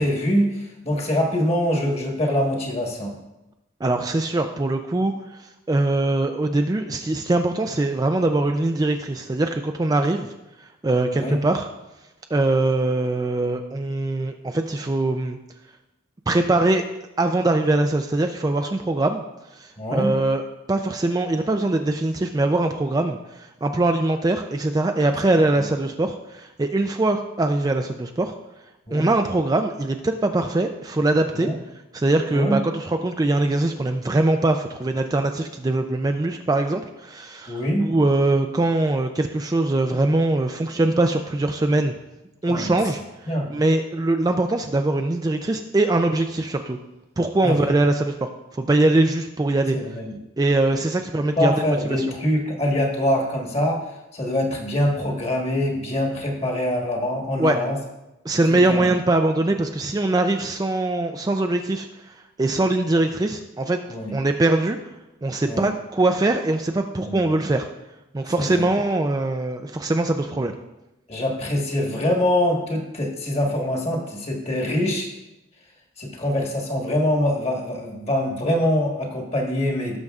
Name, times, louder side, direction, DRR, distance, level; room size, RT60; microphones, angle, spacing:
voice 1, 0.0-3.1 11.1-11.4 19.8-20.1 28.9-29.1 31.3-31.5 32.3-32.6 37.5-37.9 42.4-42.7 43.3-43.5 47.4-47.6 49.7-50.2 51.2-57.8 58.5-58.9 63.9-64.2 65.4-65.7 67.0-67.2 68.4-68.6 71.1-75.1 76.0-80.0, left 1 dB, 30° left, 1 dB, 1.4 m, -24 dB
voice 2, 3.8-10.3 10.6-11.7 12.3-15.4 16.3-16.8 17.2-19.2 19.5-28.3 28.9-31.5 31.9-42.0 42.4-46.8 47.2-49.8 50.4-52.1 57.4-57.6 58.2-63.8 64.1-64.8 65.2-67.7 68.1-70.6, right 2 dB, 20° right, 5 dB, 0.4 m, -22 dB
17.0 x 6.4 x 2.4 m, 0.96 s
head